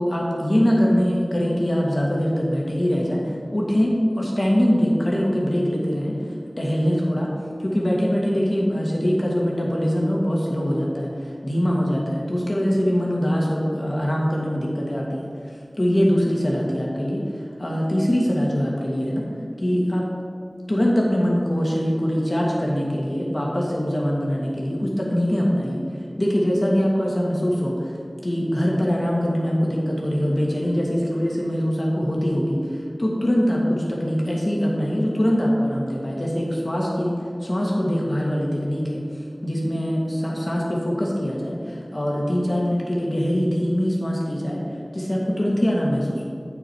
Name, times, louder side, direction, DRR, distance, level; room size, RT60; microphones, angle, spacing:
voice 1, 0.0-6.2 6.6-7.3 7.6-15.2 15.8-19.3 19.6-20.1 20.7-25.8 26.2-27.9 28.2-39.0 39.4-44.6 44.9-46.2, equal, 45° left, -3 dB, 1.9 m, -23 dB
8.7 x 5.9 x 4.7 m, 2.2 s
wide cardioid pair, 40°, 0 cm